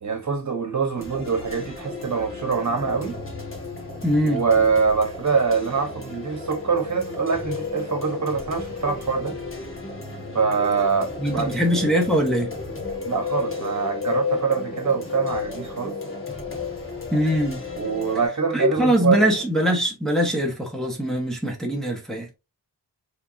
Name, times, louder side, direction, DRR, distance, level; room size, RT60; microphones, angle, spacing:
voice 1, 0.0-3.2 4.2-9.4 10.3-11.5 13.0-15.9 17.8-19.3, right 5 dB, 45° right, 1.5 m, -24 dB
sound 1, 1.0-18.3, left 1 dB, 30° left, 1.6 m, -37 dB
sound 2, 2.0-19.0, left 6 dB, 50° left, 1.3 m, -35 dB
voice 2, 4.0-4.4 11.2-12.5 17.1-17.6 18.5-22.3, equal, ahead, 1.3 m, -22 dB
4.6 x 3.6 x 2.9 m
wide cardioid pair, 135°, 41 cm